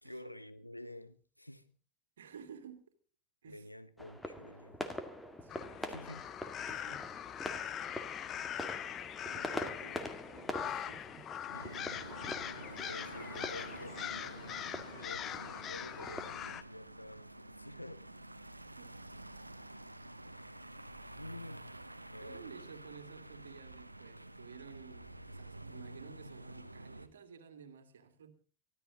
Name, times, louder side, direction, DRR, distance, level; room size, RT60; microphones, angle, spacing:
voice 1, 0.0-1.8 3.5-4.8 5.8-6.3 11.5-12.6 12.9-18.0 20.2-20.9 21.2-21.8 22.1-22.7, left 1 dB, 90° left, 1.2 m, -50 dB
voice 2, 2.2-2.9 3.4-3.7 5.4-5.9 6.7-7.0 7.5-7.9 9.2-11.3 18.8-18.9 22.2-28.3, right 7 dB, 65° right, 2.4 m, -53 dB
sound 1, 4.0-16.2, left 1 dB, 5° left, 1.9 m, -45 dB
sound 2, 5.5-16.6, left 10 dB, 30° left, 1.0 m, -42 dB
sound 3, 11.5-27.1, right 1 dB, 85° right, 1.1 m, -49 dB
23.5 x 13.5 x 3.8 m
figure-of-eight pair, 90°, 0 cm